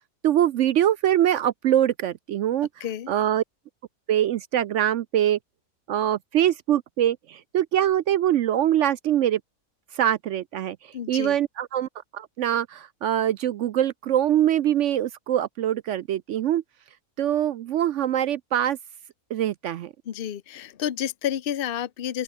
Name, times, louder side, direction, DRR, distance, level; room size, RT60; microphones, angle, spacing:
voice 1, 0.2-3.4 4.1-5.4 5.9-9.4 9.9-16.6 17.2-18.8 19.3-19.9, right 11 dB, 70° right, 0.7 m, -23 dB
voice 2, 10.9-11.4 20.1-22.2, left 10 dB, 45° left, 0.8 m, -30 dB
omnidirectional pair, 1.7 m